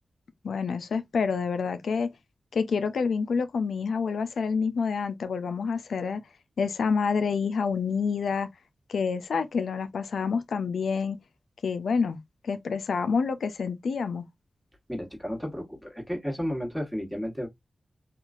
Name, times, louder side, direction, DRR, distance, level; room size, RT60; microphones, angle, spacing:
voice 1, 0.4-2.1 2.5-6.2 6.6-8.5 8.9-11.2 11.6-14.2, left 5 dB, 85° left, 0.3 m, -28 dB
voice 2, 14.9-17.5, equal, 5° right, 1.3 m, -32 dB
2.9 x 2.3 x 2.4 m
cardioid pair, 50°, 0 cm